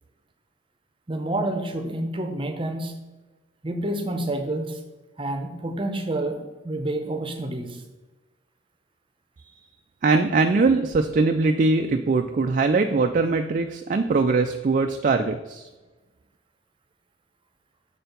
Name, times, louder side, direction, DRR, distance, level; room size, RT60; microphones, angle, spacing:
voice 1, 1.1-2.9 3.6-4.8 5.2-7.8, right 1 dB, 25° right, 6 dB, 0.7 m, -28 dB
voice 2, 10.0-15.7, right 3 dB, 40° right, 6 dB, 0.3 m, -21 dB
6.7 x 4.4 x 5.2 m, 1.2 s
head